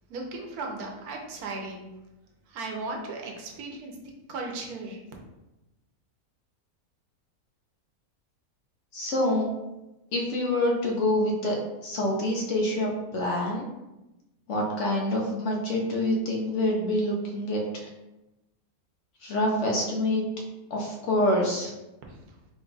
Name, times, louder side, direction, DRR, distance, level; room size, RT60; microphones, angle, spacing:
voice 1, 0.1-1.9 2.5-4.0 4.3-5.0 22.1-22.4, right 3 dB, 90° right, 1 dB, 1.2 m, -36 dB
voice 2, 8.9-9.5 10.1-11.6 11.8-13.7 14.5-17.9 19.2-20.2 20.7-21.7, left 1 dB, 60° left, -1 dB, 1.0 m, -26 dB
4.2 x 2.3 x 3.9 m, 1.0 s
omnidirectional pair, 1.6 m